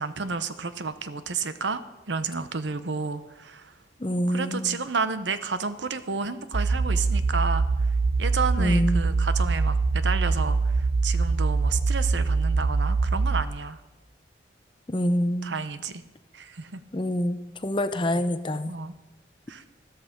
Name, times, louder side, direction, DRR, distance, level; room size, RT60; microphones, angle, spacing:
voice 1, 0.0-1.8 2.1-3.7 4.1-7.6 8.2-13.8 15.4-16.0 16.3-16.8 18.7-18.9 19.5-19.6, right 4 dB, 80° right, 12 dB, 0.9 m, -31 dB
voice 2, 4.0-4.8 8.6-9.0 14.9-15.5 16.9-18.8, equal, 25° left, 11 dB, 0.7 m, -26 dB
sound 1, 6.5-13.4, right 4 dB, 45° right, 0.7 m, -24 dB
13.5 x 13.5 x 5.2 m, 1.0 s
head